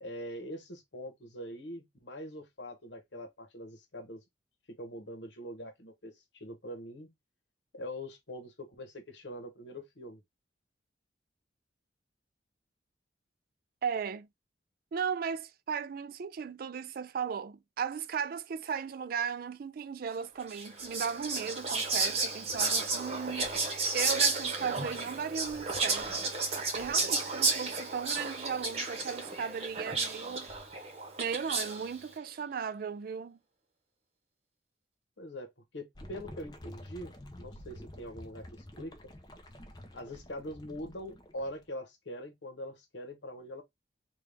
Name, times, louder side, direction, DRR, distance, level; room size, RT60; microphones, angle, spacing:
voice 1, 0.0-4.2 4.7-7.1 7.7-10.2 35.2-39.0 39.9-43.6, equal, 70° left, 1.0 m, -43 dB
voice 2, 13.8-14.3 14.9-26.3 26.7-30.5 31.2-33.4, right 6 dB, 50° right, 0.3 m, -36 dB
Whispering, 20.5-31.9, right 3 dB, 35° right, 0.9 m, -32 dB
sound 1, 36.0-41.7, left 1 dB, 25° left, 0.7 m, -49 dB
3.7 x 2.3 x 3.4 m
head